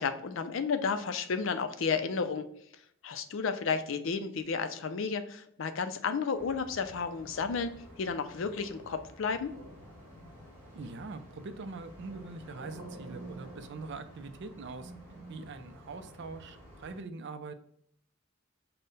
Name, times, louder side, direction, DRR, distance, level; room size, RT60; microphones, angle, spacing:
voice 1, 0.0-2.5 3.0-9.5, left 5 dB, 65° left, 9 dB, 0.5 m, -32 dB
sound 1, 6.3-17.0, left 1 dB, 10° left, 1.7 m, -53 dB
sound 2, 9.5-15.4, right 2 dB, 70° right, 0.9 m, -50 dB
voice 2, 10.7-14.9 15.3-17.5, right 3 dB, 55° right, 10 dB, 0.4 m, -43 dB
5.4 x 2.2 x 4.0 m, 0.71 s
head